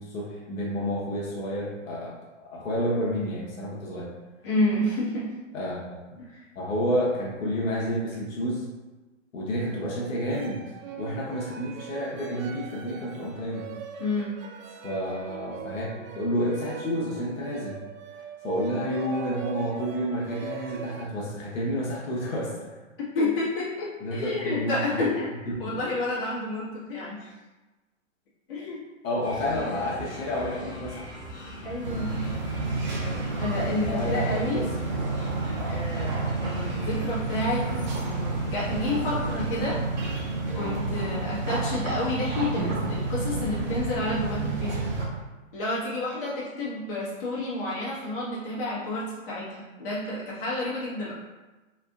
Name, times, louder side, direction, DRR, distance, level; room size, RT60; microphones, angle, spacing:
voice 1, 0.0-2.1 2.4-4.1 5.5-5.8 6.1-6.2 6.5-8.7 9.3-10.7 11.0-13.7 14.8-15.9 16.1-17.8 18.1-22.8 24.0-25.0 25.4-25.8 29.0-31.1 33.9-34.7, equal, 80° left, -5 dB, 1.1 m, -30 dB
voice 2, 4.4-5.3 6.3-6.4 14.0-14.4 23.1-27.3 28.5-28.8 31.6-32.2 33.3-34.6 35.7-37.7 37.9-39.8 40.5-44.9 45.5-51.1, left 2 dB, 45° left, -8 dB, 1.4 m, -30 dB
sound 1, 10.3-21.1, right 8 dB, 80° right, 0.5 m, -41 dB
sound 2, 29.2-40.1, equal, 10° left, 0.6 m, -41 dB
sound 3, 31.8-45.1, right 3 dB, 35° right, 0.6 m, -30 dB
3.5 x 3.3 x 2.4 m, 1.2 s
hypercardioid pair, 160°, 40 cm